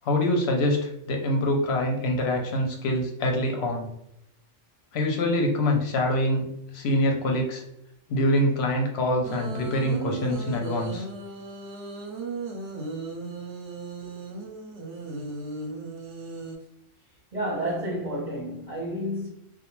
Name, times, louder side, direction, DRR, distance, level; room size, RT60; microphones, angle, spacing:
voice 1, 0.0-3.9 4.9-6.4 6.7-7.6 8.1-11.0, left 1 dB, 65° left, 0.7 m, -25 dB
sound 1, 9.2-16.6, right 3 dB, 70° right, 0.9 m, -36 dB
voice 2, 17.3-19.3, equal, 35° right, 0.7 m, -30 dB
2.2 x 2.2 x 2.9 m
omnidirectional pair, 1.3 m